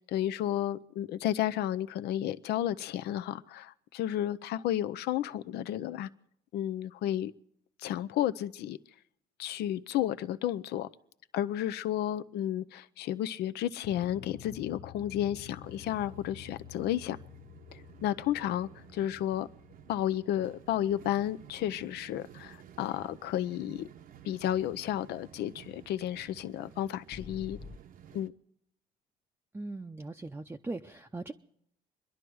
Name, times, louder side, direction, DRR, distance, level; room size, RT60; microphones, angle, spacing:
voice 1, 0.1-6.1 6.5-7.3 7.8-8.8 9.4-10.9 11.3-17.2 18.0-19.5 19.9-23.9 24.2-27.6 28.1-28.3, left 12 dB, 75° left, 0.7 m, -32 dB
sound 1, 13.8-22.2 27.1-27.8, left 9 dB, 45° left, 0.9 m, -50 dB
sound 2, 15.6-28.3, right 9 dB, 55° right, 0.8 m, -53 dB
voice 2, 29.5-31.3, right 2 dB, 15° right, 0.6 m, -39 dB
26.5 x 11.0 x 4.7 m
cardioid pair, 110°, 17 cm